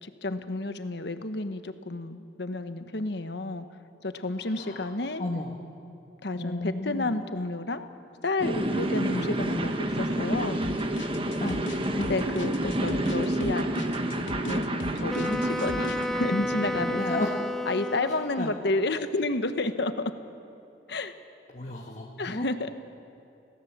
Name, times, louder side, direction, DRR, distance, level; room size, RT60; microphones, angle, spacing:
voice 1, 0.0-3.6 4.0-5.2 6.2-7.9 8.2-9.7 10.0-10.6 11.9-13.6 14.4-17.2 17.7-20.1 20.9-21.1 22.2-22.7, left 2 dB, 65° left, 9 dB, 1.2 m, -31 dB
voice 2, 4.5-4.9 5.2-5.5 6.3-7.1 11.4-11.6 16.9-17.3 18.4-18.5 21.5-22.7, left 2 dB, 40° left, -1 dB, 1.5 m, -33 dB
sound 1, 8.4-17.0, right 1 dB, 30° right, 1.4 m, -29 dB
sound 2, 10.6-16.0, left 3 dB, 85° left, 0.7 m, -39 dB
Wind instrument woodwind instrument, 15.1-18.7, left 1 dB, ahead, 0.6 m, -32 dB
25.5 x 18.0 x 7.3 m, 2.7 s
head